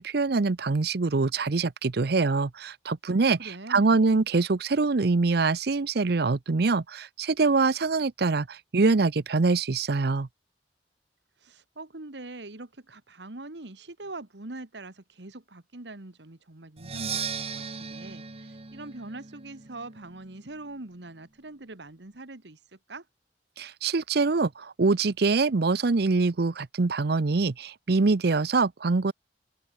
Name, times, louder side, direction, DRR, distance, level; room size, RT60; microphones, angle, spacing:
voice 1, 0.0-10.3 23.6-29.1, right 3 dB, 65° right, 0.7 m, -24 dB
voice 2, 3.4-4.0 11.4-23.1, right 2 dB, 80° right, 1.9 m, -43 dB
Percussion, 16.8-20.5, right 6 dB, 35° right, 1.3 m, -37 dB
open air
head